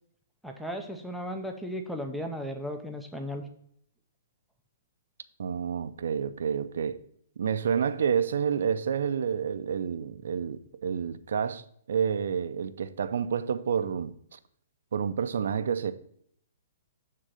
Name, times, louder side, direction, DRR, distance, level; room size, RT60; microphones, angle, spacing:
voice 1, 0.4-3.4, equal, ahead, 0.6 m, -35 dB
voice 2, 5.4-7.0 7.4-14.4 14.9-15.9, right 7 dB, 75° right, 0.5 m, -29 dB
7.5 x 3.7 x 6.5 m
hypercardioid pair, 160°, 0 cm